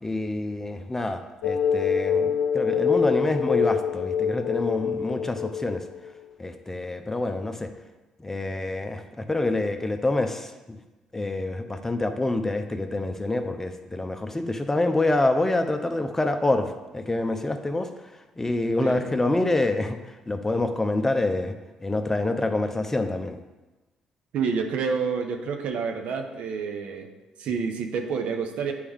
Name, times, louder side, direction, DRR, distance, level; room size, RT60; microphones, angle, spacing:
voice 1, 0.0-5.8 6.4-7.7 8.2-10.8 11.1-17.9 18.4-20.0 20.3-21.5 21.8-23.4, left 2 dB, 15° left, 7 dB, 0.7 m, -26 dB
sound 1, 1.4-6.1, left 7 dB, 90° left, 0.4 m, -25 dB
voice 2, 24.3-27.1 27.4-28.7, right 5 dB, 70° right, 5 dB, 0.8 m, -28 dB
8.5 x 4.7 x 3.6 m, 1.1 s
hypercardioid pair, 55°, 2 cm